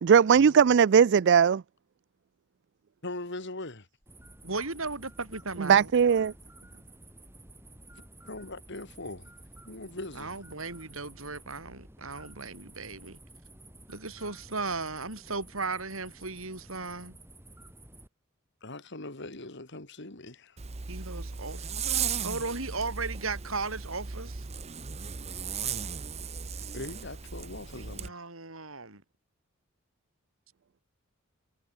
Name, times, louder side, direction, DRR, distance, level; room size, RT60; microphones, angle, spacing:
voice 1, 0.0-1.6 5.6-6.3, right 7 dB, 55° right, 0.4 m, -19 dB
voice 2, 3.0-3.9 8.2-9.3 9.7-10.4 18.6-20.6 26.7-28.1, left 2 dB, 60° left, 3.2 m, -41 dB
sound 1, 4.0-18.1, right 1 dB, 10° right, 5.1 m, -52 dB
voice 3, 4.4-5.9 10.2-13.2 13.9-17.2 20.9-21.7 22.2-24.4 27.8-29.0, right 3 dB, 80° right, 5.5 m, -36 dB
Zipper (clothing), 20.6-28.1, right 7 dB, 30° right, 0.7 m, -36 dB
head